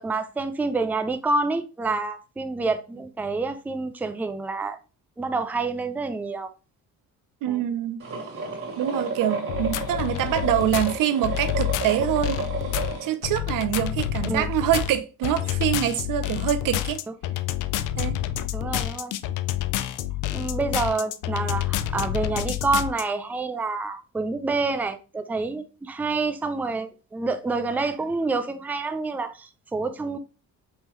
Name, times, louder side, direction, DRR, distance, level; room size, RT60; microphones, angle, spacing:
voice 1, 0.0-4.8 5.2-6.5 7.4-7.7 14.3-14.5 18.5-19.1 20.3-30.2, right 3 dB, 5° right, 0.4 m, -28 dB
voice 2, 7.4-8.0 8.8-12.4 13.0-17.0 18.0-18.2, right 11 dB, 75° right, 0.7 m, -25 dB
sound 1, 8.0-13.1, right 4 dB, 40° right, 2.0 m, -32 dB
sound 2, 9.5-23.0, left 13 dB, 65° left, 0.5 m, -28 dB
5.6 x 2.9 x 3.0 m
cardioid pair, 105°, 33 cm